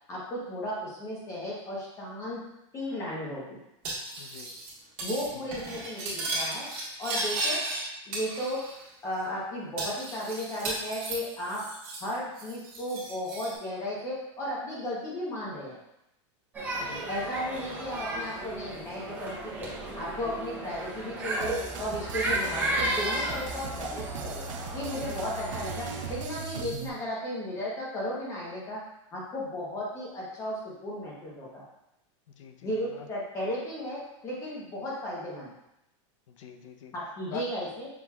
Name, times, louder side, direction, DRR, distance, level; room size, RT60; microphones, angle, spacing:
voice 1, 0.1-2.4 2.7-3.6 5.0-6.7 7.0-7.6 8.1-8.6 9.0-11.6 12.0-15.8 17.1-19.7 19.9-24.4 24.7-28.8 29.1-31.6 32.6-35.5 36.9-37.9, equal, 20° left, -5 dB, 0.9 m, -35 dB
Cutlery silverware, 3.8-4.7 5.0-5.3 5.5-7.8 8.1-8.8 9.1-9.2 9.8-12.1 12.4-13.5, right 2 dB, 35° right, 1.4 m, -35 dB
voice 2, 4.2-4.6 5.3-5.4 16.8-17.1 32.3-33.1 36.3-36.9 37.3-37.5, left 7 dB, 80° left, 6 dB, 0.6 m, -44 dB
sound 1, 16.5-26.1, right 1 dB, 10° right, 0.6 m, -34 dB
sound 2, 21.4-26.9, right 5 dB, 80° right, 0.5 m, -39 dB
5.8 x 3.0 x 2.3 m, 0.86 s
supercardioid pair, 165°, 16 cm